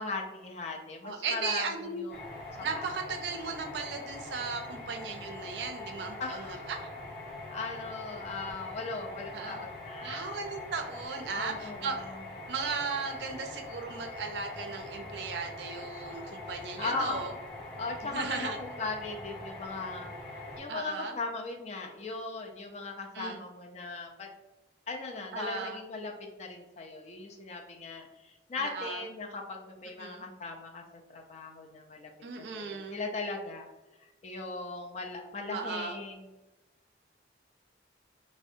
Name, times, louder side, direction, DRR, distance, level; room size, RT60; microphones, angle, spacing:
voice 1, 0.0-2.1 2.6-2.9 6.2-6.7 7.5-10.4 11.4-12.2 15.9-16.3 16.8-17.2 17.8-24.3 24.9-26.1 26.4-30.8 31.1-32.1 32.4-33.7 34.0-36.2, left 3 dB, 35° left, 2 dB, 0.3 m, -38 dB
voice 2, 1.0-2.1 2.6-6.9 9.3-9.7 10.0-12.1 12.5-17.3 18.0-18.6 20.7-21.1 23.1-23.4 25.3-25.8 28.6-29.0 30.0-30.3 32.2-33.1 35.5-36.0, right 4 dB, 70° right, 4 dB, 0.4 m, -36 dB
sound 1, 2.1-20.6, left 2 dB, ahead, 1.2 m, -43 dB
2.5 x 2.1 x 2.6 m, 1.1 s
head